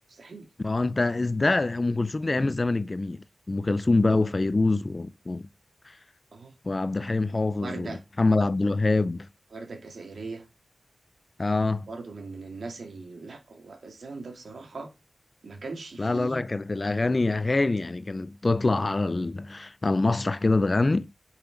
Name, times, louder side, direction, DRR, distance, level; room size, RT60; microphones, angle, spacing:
voice 1, 0.1-0.5 6.3-6.5 7.6-8.0 9.5-10.4 11.9-14.9 15.4-16.4, right 3 dB, 75° right, 2.4 m, -39 dB
voice 2, 0.6-5.5 5.9-6.0 6.6-9.3 11.4-11.9 16.0-21.1, left 2 dB, 35° left, 0.5 m, -25 dB
10.0 x 5.8 x 3.9 m
wide cardioid pair, 75°, 0 cm